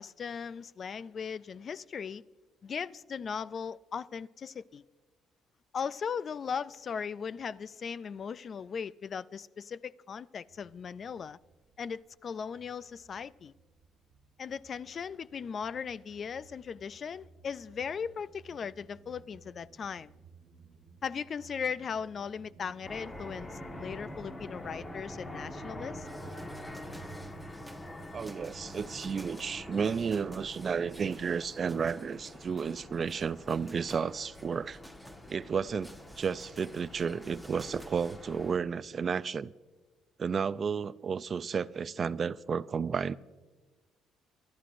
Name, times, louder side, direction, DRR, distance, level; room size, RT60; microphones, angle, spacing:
voice 1, 0.0-2.2 2.6-4.8 5.7-11.4 11.8-13.5 14.4-20.1 21.0-26.1, left 6 dB, 45° left, 0.3 m, -38 dB
sound 1, 10.5-12.1 12.4-30.2, right 6 dB, 60° right, 1.4 m, -55 dB
sound 2, 22.8-38.6, left 1 dB, 25° left, 1.4 m, -46 dB
sound 3, 26.0-38.2, equal, ahead, 1.1 m, -55 dB
voice 2, 28.1-34.8 35.3-39.5 40.2-43.1, right 6 dB, 40° right, 0.3 m, -32 dB
30.0 x 12.0 x 2.5 m
cardioid pair, 100°, 0 cm